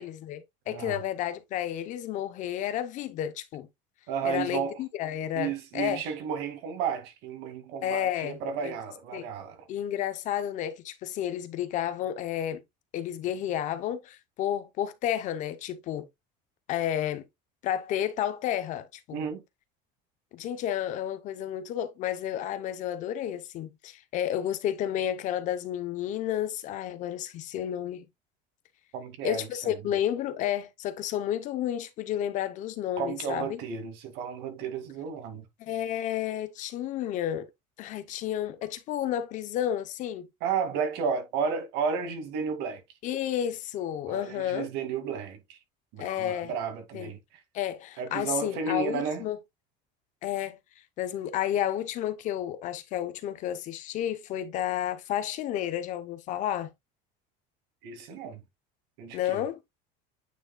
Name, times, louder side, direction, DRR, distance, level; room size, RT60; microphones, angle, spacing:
voice 1, 0.0-3.7 4.2-6.0 7.8-8.4 8.6-8.7 9.1-9.3 9.7-12.6 12.9-16.1 16.7-17.2 17.6-19.2 20.3-28.1 29.2-33.6 35.6-37.5 37.8-40.3 43.0-44.7 46.0-46.5 46.9-47.1 47.5-49.4 50.2-50.6 51.0-56.7 59.1-59.6, left 11 dB, 40° left, 0.7 m, -31 dB
voice 2, 0.7-1.0 4.1-4.8 5.3-9.7 19.1-19.4 28.9-29.8 33.0-35.4 40.4-42.8 44.1-45.6 45.9-47.2 48.0-49.3 57.8-58.4 59.0-59.4, right 6 dB, 60° right, 2.1 m, -32 dB
9.1 x 4.9 x 2.2 m
cardioid pair, 175°, 19 cm